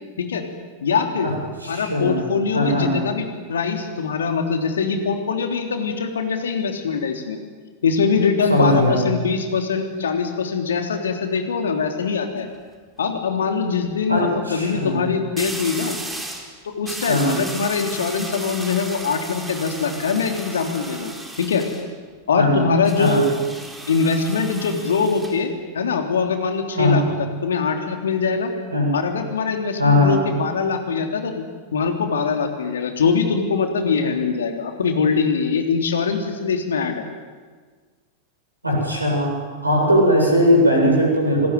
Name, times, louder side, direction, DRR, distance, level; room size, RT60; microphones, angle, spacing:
voice 1, 0.8-1.3 1.7-7.4 7.8-12.5 13.0-16.0 16.6-21.6 22.3-23.2 23.9-28.5 28.9-31.4 31.7-37.0, left 5 dB, 65° left, 5 dB, 3.4 m, -22 dB
voice 2, 1.6-2.2 2.5-2.9 8.5-9.0 14.1-15.0 17.1-17.3 22.4-22.5 23.0-23.2 26.8-27.0 28.7-28.9 29.8-30.1 38.6-39.3 39.6-41.5, left 1 dB, 80° right, 0 dB, 8.0 m, -18 dB
sound 1, 12.2-12.5 15.4-16.5 16.8-21.8 22.8-25.4, right 2 dB, 10° right, 4.3 m, -34 dB
27.0 x 20.5 x 9.3 m, 1.5 s
figure-of-eight pair, 90°, 0 cm